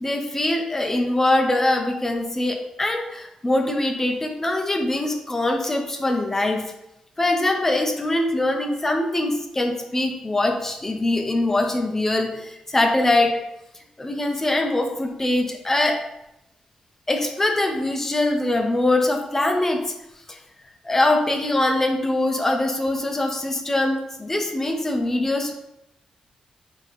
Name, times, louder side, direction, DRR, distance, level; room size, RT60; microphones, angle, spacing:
voice 1, 0.0-6.6 7.2-13.3 14.0-16.0 17.1-19.8 20.3-20.4 20.8-25.5, left 1 dB, 20° left, 4 dB, 0.5 m, -23 dB
4.0 x 2.9 x 3.1 m, 0.88 s
cardioid pair, 110°, 2 cm